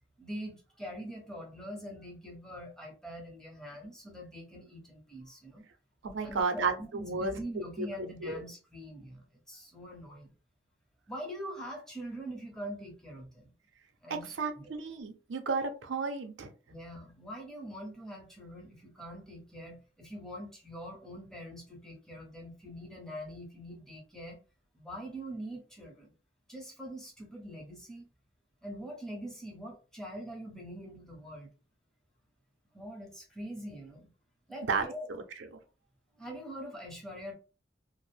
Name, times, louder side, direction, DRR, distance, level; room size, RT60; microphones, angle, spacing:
voice 1, 0.2-5.7 6.2-10.3 11.1-13.5 14.0-14.7 16.7-24.4 24.7-26.1 26.5-28.1 28.6-31.5 32.7-34.1 34.5-35.1 36.2-37.3, equal, 5° left, -1 dB, 0.8 m, -43 dB
voice 2, 6.0-7.9 8.2-8.4 14.4-16.5 34.7-35.6, right 4 dB, 85° right, 7 dB, 0.6 m, -33 dB
2.4 x 2.0 x 3.2 m, 0.34 s
head